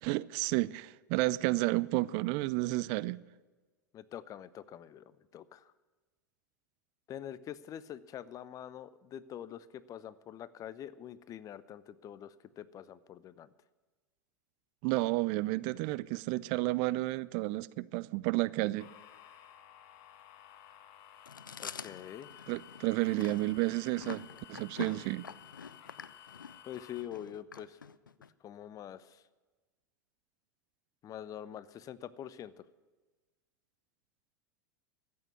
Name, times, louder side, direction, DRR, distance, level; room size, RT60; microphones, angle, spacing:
voice 1, 0.0-3.2 14.8-18.9 22.5-24.2 24.5-25.3, right 20 dB, 50° right, 0.4 m, -31 dB
voice 2, 3.9-5.7 7.1-13.5 21.6-22.5 26.7-27.8 28.4-29.2 31.0-32.6, left 10 dB, 35° left, 0.7 m, -45 dB
sound 1, 18.8-27.0, left 9 dB, 50° left, 1.4 m, -55 dB
Chewing mastication, 21.3-28.3, left 6 dB, 85° left, 0.5 m, -46 dB
13.5 x 8.6 x 9.6 m
hypercardioid pair, 90°, 10 cm